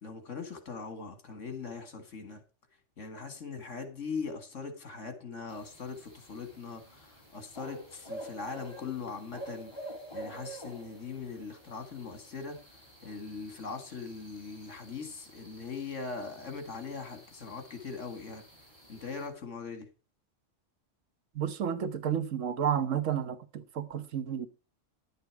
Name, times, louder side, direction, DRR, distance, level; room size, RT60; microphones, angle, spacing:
voice 1, 0.0-2.4 3.0-9.7 10.1-18.4 18.9-19.9, left 5 dB, 75° left, 2.2 m, -41 dB
sound 1, 5.5-19.3, right 1 dB, 20° left, 3.8 m, -49 dB
voice 2, 21.3-24.5, right 8 dB, 85° right, 1.4 m, -31 dB
11.0 x 8.3 x 4.6 m
omnidirectional pair, 1.3 m